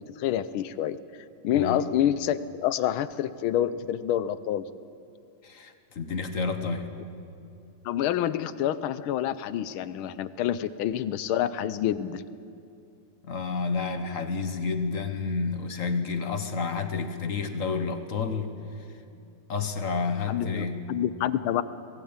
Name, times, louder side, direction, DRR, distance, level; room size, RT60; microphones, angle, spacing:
voice 1, 0.2-1.0 1.4-4.6 7.8-12.2 20.3-21.6, left 11 dB, 90° left, 14 dB, 1.6 m, -27 dB
voice 2, 1.5-1.9 5.4-6.9 13.2-18.5 19.5-20.9, left 4 dB, 45° left, 8 dB, 1.3 m, -30 dB
20.0 x 16.0 x 8.8 m, 2.6 s
omnidirectional pair, 2.2 m